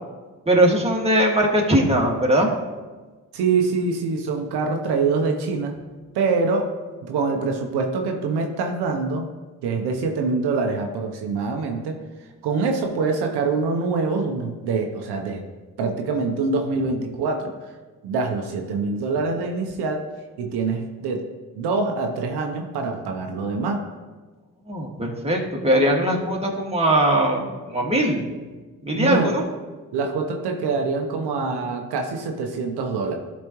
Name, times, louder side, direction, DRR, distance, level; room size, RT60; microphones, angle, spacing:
voice 1, 0.5-2.5 24.7-28.3 28.8-29.4, right 1 dB, 15° right, -2 dB, 1.9 m, -20 dB
voice 2, 3.3-5.7 6.1-6.7 7.0-9.3 9.6-11.9 12.4-15.4 15.8-17.5 18.0-20.0 20.4-21.2 21.6-23.8 28.9-29.4 29.9-33.1, right 4 dB, 85° right, 3 dB, 0.8 m, -24 dB
12.0 x 4.2 x 3.0 m, 1.3 s
supercardioid pair, 55°, 38 cm